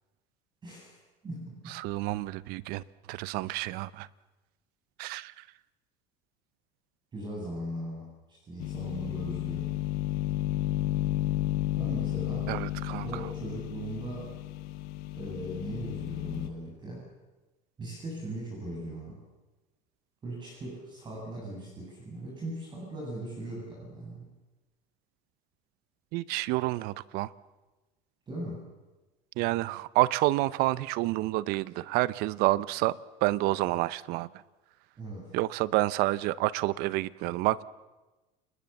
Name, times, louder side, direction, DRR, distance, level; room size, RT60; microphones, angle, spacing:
voice 1, 0.6-1.0 1.2-1.8 7.1-9.7 11.8-12.5 13.0-14.3 15.1-17.0 17.8-19.2 20.2-24.3 28.3-28.7 35.0-35.3, right 1 dB, 25° right, -2 dB, 8.0 m, -39 dB
voice 2, 1.7-4.1 5.0-5.4 12.5-13.3 26.1-27.3 29.4-34.3 35.3-37.6, right 18 dB, 65° right, 19 dB, 0.9 m, -29 dB
sound 1, 8.6-16.5, left 15 dB, 65° left, 1.4 m, -32 dB
29.5 x 20.5 x 7.2 m, 1.1 s
cardioid pair, 130°, 17 cm